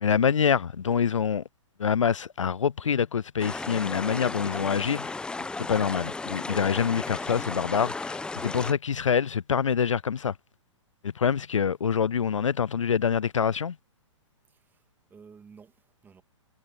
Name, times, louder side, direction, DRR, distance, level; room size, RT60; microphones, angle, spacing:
voice 1, 0.0-1.4 1.8-5.2 5.7-10.3 11.0-13.8, left 7 dB, 80° left, 0.5 m, -26 dB
sound 1, 3.4-8.7, left 3 dB, 5° left, 1.0 m, -34 dB
voice 2, 14.5-16.2, right 5 dB, 10° right, 2.3 m, -54 dB
figure-of-eight pair, 125°, 16 cm